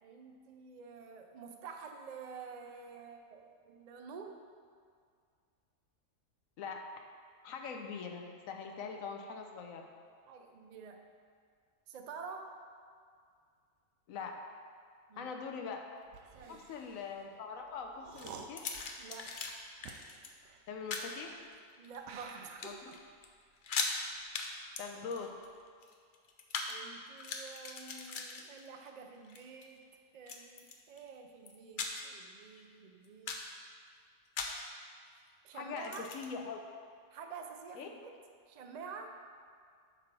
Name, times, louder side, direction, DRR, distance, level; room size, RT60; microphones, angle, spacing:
voice 1, 0.0-4.4 10.3-11.0 11.9-12.5 15.1-15.4 16.3-16.7 19.0-19.3 21.8-23.0 26.7-29.8 30.1-33.4 35.4-36.1 37.1-38.2 38.5-39.1, right 5 dB, 55° right, 4 dB, 0.4 m, -49 dB
voice 2, 7.4-9.9 14.1-14.3 15.2-15.8 16.5-18.7 20.7-21.4 22.6-22.7 24.8-25.3 35.5-36.6 37.8-37.9, left 5 dB, 85° left, 3 dB, 1.1 m, -42 dB
sound 1, 16.0-21.6 22.0-24.9 25.2-25.6, right 5 dB, 80° right, 1.0 m, -53 dB
sound 2, 18.2-19.5 19.8-20.3 20.9-21.1 21.7-22.3 22.6-23.0 23.2-23.3 23.6-24.0 24.3-24.5 24.8-26.8 27.1-28.9 29.2-29.6 30.3-31.0 31.5-32.2 32.5-32.6 33.0-33.5 34.4-34.7 35.8-36.3, left 4 dB, 50° left, 0.6 m, -39 dB
8.8 x 3.4 x 5.9 m, 2.2 s
omnidirectional pair, 1.4 m